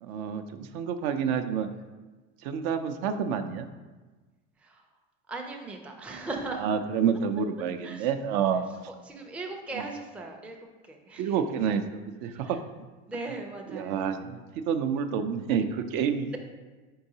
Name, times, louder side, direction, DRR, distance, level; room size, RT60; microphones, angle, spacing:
voice 1, 0.0-1.7 2.4-3.7 6.6-8.6 11.2-12.6 13.7-14.4 14.7-16.4, right 7 dB, 65° right, 8 dB, 0.5 m, -28 dB
voice 2, 5.3-6.7 7.8-8.1 8.9-10.6 10.8-11.4 12.3-12.6 13.1-14.2 16.3-16.4, right 2 dB, 5° right, 2 dB, 0.3 m, -38 dB
4.6 x 3.7 x 2.7 m, 1.3 s
supercardioid pair, 95°, 34 cm